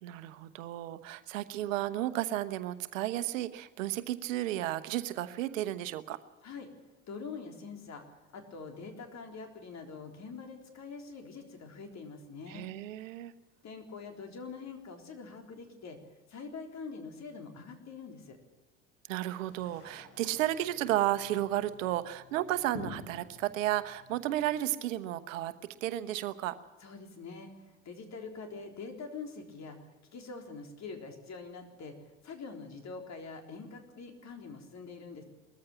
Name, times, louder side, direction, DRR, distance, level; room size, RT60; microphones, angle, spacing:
voice 1, 0.0-6.2 12.5-13.3 19.1-25.5 25.8-26.6, right 14 dB, 75° right, 12 dB, 1.1 m, -33 dB
voice 2, 7.1-8.0 8.3-12.7 13.6-16.0 16.3-18.4 26.8-35.2, left 4 dB, 45° left, 5 dB, 3.9 m, -44 dB
sound 1, 19.3-24.5, left 3 dB, 70° left, 6.9 m, -49 dB
20.5 x 14.5 x 8.9 m, 1.2 s
hypercardioid pair, 65°, 39 cm